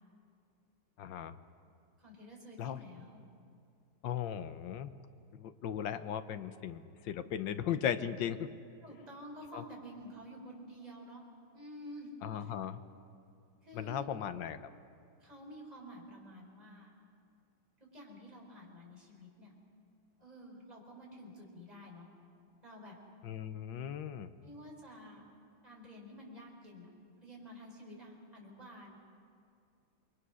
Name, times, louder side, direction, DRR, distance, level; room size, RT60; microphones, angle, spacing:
voice 1, 1.0-1.3 2.6-2.8 4.0-4.9 5.4-8.5 9.5-9.6 12.2-12.8 13.7-14.6 23.2-24.3, left 9 dB, 70° left, 11 dB, 1.5 m, -37 dB
voice 2, 2.0-3.2 8.8-11.2 11.5-12.5 13.6-14.1 15.2-16.9 17.8-19.5 20.2-22.1 22.6-23.0 24.4-25.2 25.6-26.9 27.2-29.0, equal, 20° right, -2 dB, 4.9 m, -50 dB
28.5 x 22.5 x 6.3 m, 2.4 s
omnidirectional pair, 2.1 m